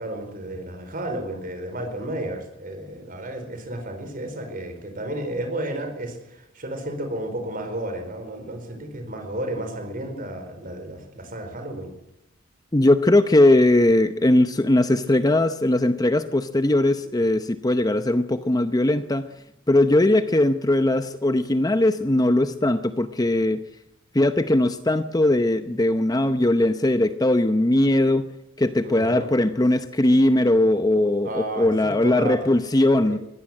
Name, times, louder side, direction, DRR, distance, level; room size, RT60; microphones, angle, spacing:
voice 1, 0.0-11.9 28.8-29.3 31.2-32.4 33.0-33.2, right 1 dB, 40° right, 6 dB, 4.7 m, -32 dB
voice 2, 12.7-19.3 19.7-23.6 24.1-28.2 28.6-33.2, left 1 dB, 20° left, 10 dB, 0.7 m, -20 dB
22.0 x 16.0 x 7.6 m, 0.86 s
head